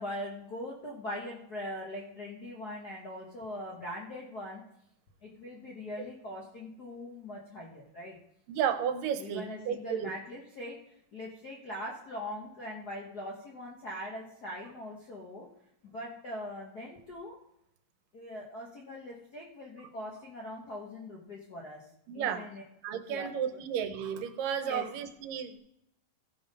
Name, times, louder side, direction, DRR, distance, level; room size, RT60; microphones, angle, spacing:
voice 1, 0.0-4.6 5.2-8.2 9.2-10.8 11.1-15.5 15.8-17.4 18.1-21.9 22.1-22.6 23.1-23.6 24.7-24.9, left 1 dB, 70° left, -2 dB, 0.9 m, -41 dB
voice 2, 8.5-10.1 22.1-22.4 22.8-25.6, right 8 dB, 80° right, 8 dB, 2.4 m, -33 dB
15.5 x 5.4 x 5.3 m, 0.80 s
omnidirectional pair, 3.9 m